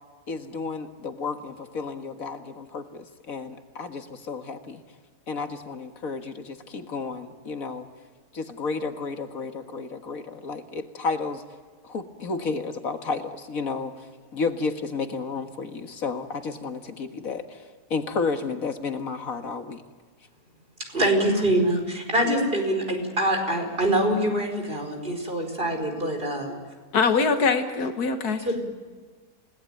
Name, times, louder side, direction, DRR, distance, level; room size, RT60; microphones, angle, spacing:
voice 1, 0.3-4.8 5.3-7.9 8.3-11.4 11.8-13.9 14.3-17.6 17.9-19.8, left 4 dB, 65° left, 2.1 m, -32 dB
voice 2, 20.9-26.6 28.4-28.6, right 1 dB, 35° right, 5.1 m, -24 dB
voice 3, 26.9-28.4, left 5 dB, 85° left, 1.9 m, -22 dB
30.0 x 18.5 x 9.0 m
omnidirectional pair, 1.6 m